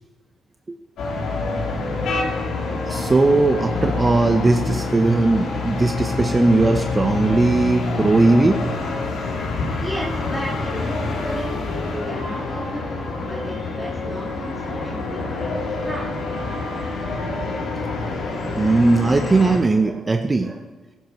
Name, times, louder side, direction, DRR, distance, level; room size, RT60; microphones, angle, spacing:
sound 1, 1.0-19.6, left 3 dB, 75° left, 3.3 m, -26 dB
voice 1, 2.9-8.6 15.2-15.9 16.5-16.6 17.3-17.5 18.0-20.6, right 3 dB, 25° right, 5 dB, 0.8 m, -19 dB
voice 2, 9.8-11.5 12.0-16.1, equal, 5° left, -4 dB, 2.0 m, -34 dB
15.5 x 13.0 x 3.2 m, 1.3 s
cardioid pair, 90°, 0 cm